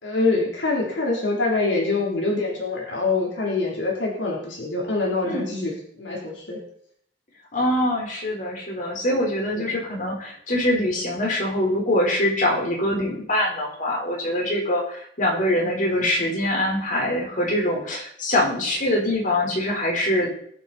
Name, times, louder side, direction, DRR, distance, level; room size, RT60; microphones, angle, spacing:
voice 1, 0.0-6.6 9.4-9.7 15.6-16.0, left 3 dB, 80° left, -2 dB, 3.6 m, -25 dB
voice 2, 7.5-20.3, left 1 dB, 45° left, -2 dB, 4.5 m, -24 dB
21.5 x 8.1 x 4.3 m, 0.64 s
head